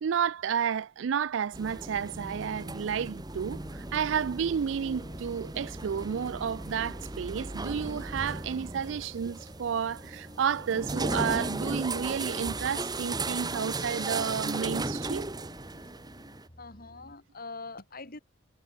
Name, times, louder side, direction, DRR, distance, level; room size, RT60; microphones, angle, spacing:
voice 1, 0.0-3.6 3.9-15.3, right 7 dB, 75° right, 0.4 m, -31 dB
sound 1, 1.5-16.5, right 2 dB, 20° right, 1.7 m, -36 dB
sound 2, 3.5-17.1, equal, 25° left, 5.5 m, -53 dB
voice 2, 16.6-18.2, left 3 dB, 50° left, 4.4 m, -43 dB
head